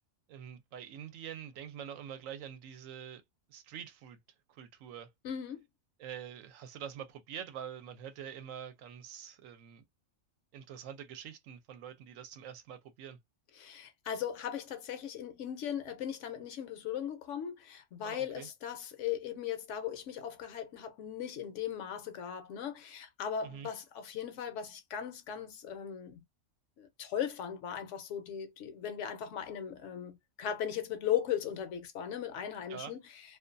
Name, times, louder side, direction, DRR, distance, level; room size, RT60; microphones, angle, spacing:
voice 1, 0.3-3.2 3.5-4.2 4.5-5.1 6.0-9.8 10.5-13.2 18.0-18.5 23.4-23.7 32.7-32.9, right 9 dB, 75° right, 0.9 m, -45 dB
voice 2, 5.2-5.6 13.6-26.2 26.8-33.2, left 9 dB, 70° left, 0.8 m, -38 dB
2.4 x 2.2 x 2.5 m
omnidirectional pair, 1.4 m